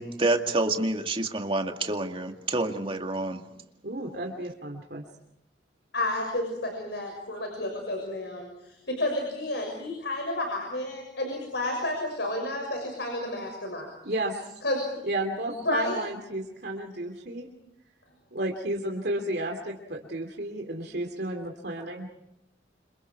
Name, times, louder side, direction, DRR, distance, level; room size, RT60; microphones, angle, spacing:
voice 1, 0.0-3.4, right 2 dB, 30° right, 4 dB, 2.2 m, -28 dB
voice 2, 3.8-5.0 14.0-14.4 15.0-17.5 18.3-22.0, right 1 dB, 60° right, 2 dB, 2.8 m, -32 dB
voice 3, 5.9-13.9 14.6-14.9 15.5-16.0, left 1 dB, 65° left, 2 dB, 6.5 m, -31 dB
29.0 x 27.5 x 4.7 m, 0.86 s
head